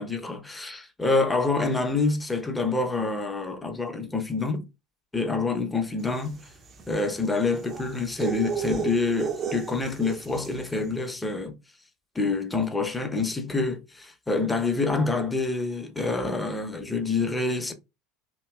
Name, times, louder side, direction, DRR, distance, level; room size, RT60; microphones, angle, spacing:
voice 1, 0.0-4.7 5.1-6.4 6.9-11.5 12.1-17.7, left 3 dB, 15° left, 0.7 m, -27 dB
sound 1, 6.1-10.7, right 7 dB, 35° right, 0.6 m, -34 dB
2.9 x 2.7 x 2.3 m
figure-of-eight pair, 75°, 0 cm